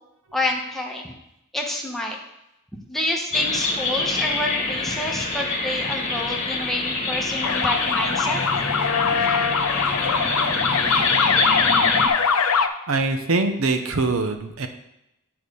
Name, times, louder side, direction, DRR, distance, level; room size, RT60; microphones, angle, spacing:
voice 1, 0.3-1.1 1.5-2.2 2.9-8.4 11.5-11.6, left 1 dB, ahead, 0 dB, 1.0 m, -28 dB
sound 1, 3.3-12.1, left 3 dB, 35° left, 1.3 m, -25 dB
sound 2, 7.4-12.7, left 6 dB, 75° left, 0.6 m, -22 dB
voice 2, 12.9-14.7, right 3 dB, 70° right, 7 dB, 0.8 m, -23 dB
8.8 x 4.8 x 5.4 m, 0.85 s
head